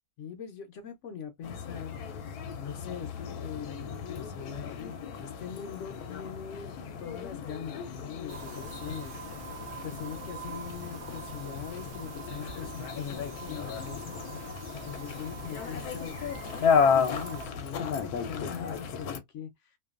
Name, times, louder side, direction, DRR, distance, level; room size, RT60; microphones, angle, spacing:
voice 1, 0.2-4.8 5.2-9.2 9.8-14.2 14.8-16.7 16.9-19.8, left 8 dB, 65° left, 0.8 m, -42 dB
sound 1, 1.4-19.2, left 6 dB, 85° left, 1.1 m, -33 dB
sound 2, 8.3-17.5, right 5 dB, 85° right, 0.4 m, -45 dB
2.6 x 2.3 x 2.3 m
omnidirectional pair, 1.6 m